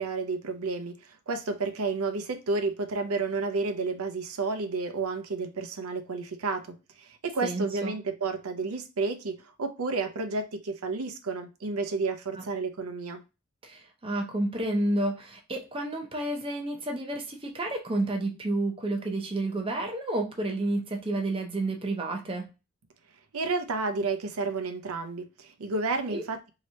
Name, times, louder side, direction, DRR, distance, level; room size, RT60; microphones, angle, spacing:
voice 1, 0.0-13.2 23.3-26.4, right 3 dB, 80° right, 0.6 m, -31 dB
voice 2, 7.4-7.9 12.4-12.5 13.6-22.5 26.1-26.2, right 2 dB, 25° right, 0.6 m, -30 dB
3.2 x 2.8 x 2.7 m
head